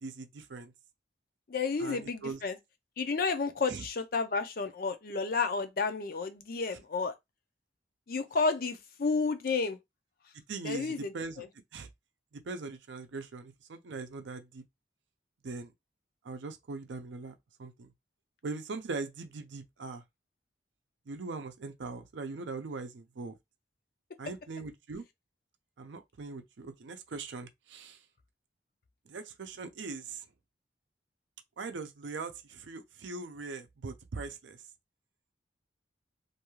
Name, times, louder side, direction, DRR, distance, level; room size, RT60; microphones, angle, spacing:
voice 1, 0.0-0.7 1.8-2.4 3.7-3.8 10.3-11.4 11.7-11.9 12.3-14.6 15.4-15.7 16.2-17.9 18.4-20.0 21.1-23.3 24.2-25.0 25.8-28.0 29.1-30.2 31.6-34.6, right 3 dB, 80° right, 0.5 m, -41 dB
voice 2, 1.5-2.6 3.0-7.1 8.1-9.8 10.6-11.5, left 4 dB, 50° left, 0.5 m, -31 dB
2.6 x 2.3 x 3.0 m
head